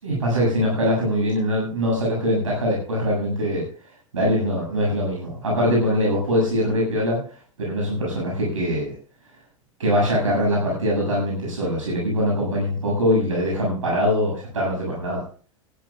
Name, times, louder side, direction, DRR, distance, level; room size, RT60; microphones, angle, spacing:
voice 1, 0.0-3.6 4.1-7.2 7.6-8.9 9.8-15.2, equal, 75° right, -3 dB, 7.6 m, -22 dB
19.5 x 15.0 x 2.5 m, 0.40 s
figure-of-eight pair, 90°, 17 cm